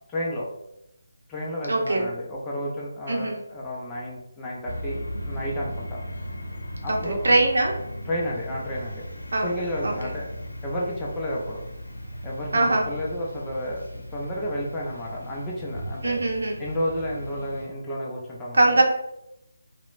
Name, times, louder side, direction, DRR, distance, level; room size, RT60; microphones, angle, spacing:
voice 1, 0.1-0.5 1.3-6.0 6.8-7.4 8.1-9.1 9.4-10.3 10.6-11.6 12.2-16.2 16.6-18.8, equal, 15° left, -4 dB, 0.4 m, -31 dB
voice 2, 1.7-2.1 3.1-3.4 6.9-7.8 9.3-9.5 9.8-9.9 12.5-12.9 16.0-16.6 18.5-18.8, right 2 dB, 70° right, 0 dB, 0.6 m, -21 dB
sound 1, 4.7-17.7, equal, 85° left, 0.7 m, -37 dB
2.8 x 2.0 x 2.4 m, 0.85 s
figure-of-eight pair, 155°, 0 cm